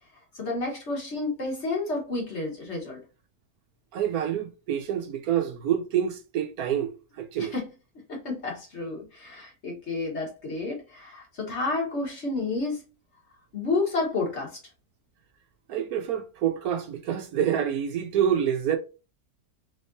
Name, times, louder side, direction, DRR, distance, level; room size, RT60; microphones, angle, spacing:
voice 1, 0.3-3.0 7.4-7.7 8.1-12.8 13.5-14.6, left 3 dB, 45° left, 1.5 m, -30 dB
voice 2, 3.9-7.5 15.7-18.8, right 9 dB, 70° right, 1.1 m, -27 dB
3.7 x 3.5 x 2.6 m
omnidirectional pair, 1.7 m